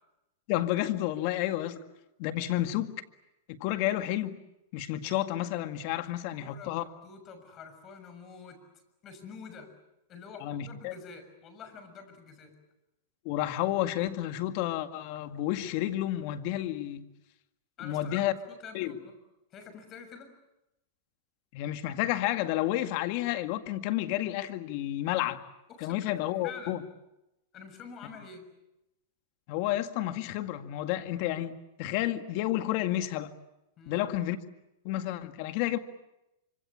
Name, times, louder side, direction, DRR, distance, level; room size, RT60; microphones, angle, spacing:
voice 1, 0.5-1.8 2.2-2.9 3.5-4.4 4.7-6.8 10.4-10.9 13.3-17.0 17.8-18.3 18.7-19.0 21.5-25.4 25.8-26.8 29.5-33.3 33.9-34.4 34.8-35.8, left 14 dB, 55° left, 2.0 m, -30 dB
voice 2, 6.0-8.6 9.0-9.7 10.1-12.5 17.8-19.1 19.5-20.3 25.7-26.1 26.4-26.8 27.5-28.5 33.8-34.1, left 5 dB, 35° left, 6.6 m, -47 dB
26.0 x 25.5 x 8.6 m
hypercardioid pair, 125°, 0 cm